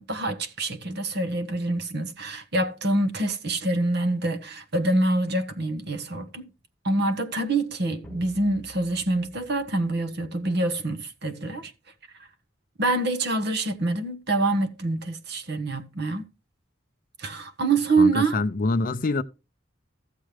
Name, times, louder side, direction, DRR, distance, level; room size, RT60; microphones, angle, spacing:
voice 1, 0.0-6.5 6.8-11.7 12.8-16.2 17.2-18.4, right 2 dB, 55° right, 1.2 m, -26 dB
sound 1, 8.0-10.6, left 3 dB, 5° left, 1.2 m, -50 dB
voice 2, 18.0-19.2, left 3 dB, 45° left, 0.5 m, -25 dB
13.5 x 7.4 x 3.3 m
head